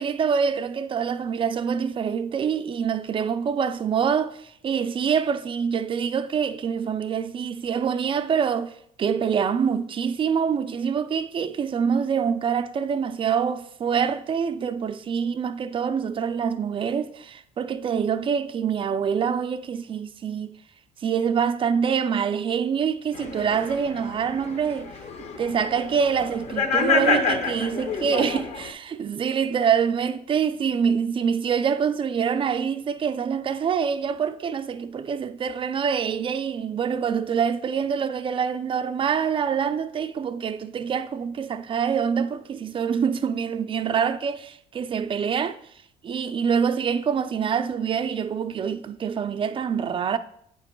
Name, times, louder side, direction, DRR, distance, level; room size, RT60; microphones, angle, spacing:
voice 1, 0.0-20.5 21.0-24.9 25.4-45.6 46.0-50.2, right 7 dB, 30° right, 0.4 m, -25 dB
sound 1, 23.1-28.7, left 4 dB, 40° left, 0.7 m, -28 dB
8.6 x 2.9 x 4.4 m
cardioid pair, 110°, 17 cm